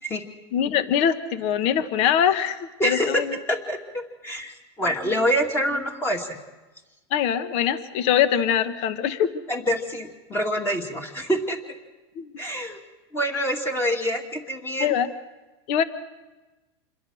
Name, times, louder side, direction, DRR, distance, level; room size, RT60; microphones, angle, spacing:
voice 1, 0.5-3.4 7.1-9.4 12.2-12.3 14.8-15.1 15.7-15.8, left 9 dB, 45° left, 11 dB, 1.4 m, -23 dB
voice 2, 2.8-3.2 3.5-6.4 9.5-11.6 12.4-12.8 13.1-14.9, equal, 15° left, 2 dB, 2.4 m, -26 dB
27.5 x 21.5 x 6.4 m, 1.1 s
supercardioid pair, 140°, 14 cm